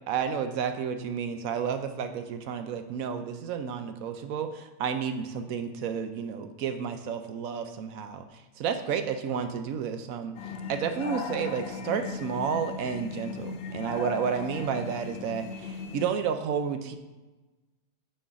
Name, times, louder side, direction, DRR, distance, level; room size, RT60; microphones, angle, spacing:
voice 1, 0.1-10.3 10.7-17.0, right 7 dB, 70° right, 8 dB, 0.9 m, -31 dB
sound 1, 10.4-16.1, left 5 dB, 65° left, 0.6 m, -37 dB
9.0 x 4.4 x 3.6 m, 1.1 s
omnidirectional pair, 1.8 m